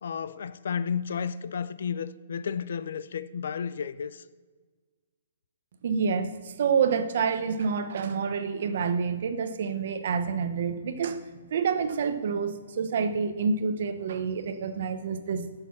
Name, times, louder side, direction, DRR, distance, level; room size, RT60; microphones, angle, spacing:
voice 1, 0.0-4.2, left 7 dB, 65° left, 0.4 m, -32 dB
voice 2, 5.8-11.2 11.5-15.7, right 6 dB, 50° right, 0.8 m, -28 dB
11.5 x 6.6 x 5.9 m
hypercardioid pair, 175°, 0 cm